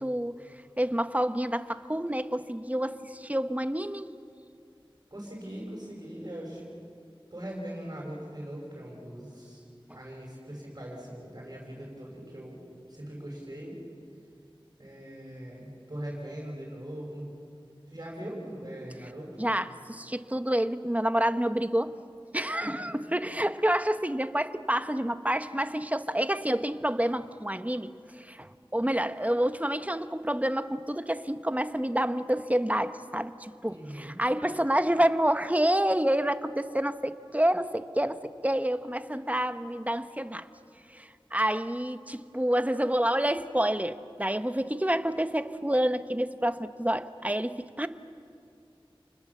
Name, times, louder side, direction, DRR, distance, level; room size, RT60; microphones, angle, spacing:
voice 1, 0.0-0.3 0.8-4.1 19.4-21.9 22.3-40.5 40.9-47.9, right 1 dB, 15° right, 10 dB, 1.0 m, -28 dB
voice 2, 5.1-6.6 7.3-9.6 9.9-12.6 12.9-13.7 14.8-17.3 17.9-19.3 22.6-22.7 33.7-34.2, right 1 dB, 40° right, -4 dB, 6.3 m, -40 dB
29.0 x 20.0 x 7.3 m, 2.4 s
wide cardioid pair, 40°, 9 cm